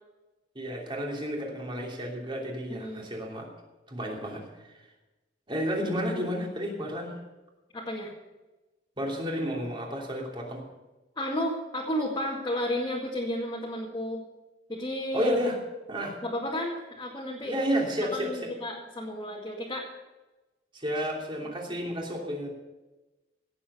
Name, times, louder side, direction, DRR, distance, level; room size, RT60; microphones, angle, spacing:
voice 1, 0.5-3.5 3.9-4.8 5.5-7.1 9.0-10.6 15.1-15.6 15.9-16.2 17.4-18.5 20.7-22.5, equal, 30° right, -1 dB, 3.1 m, -31 dB
voice 2, 2.7-3.1 7.7-8.1 11.2-14.2 14.7-15.3 16.2-17.5 18.1-19.9, equal, 25° left, -4 dB, 2.1 m, -32 dB
17.0 x 7.5 x 6.9 m, 1.1 s
head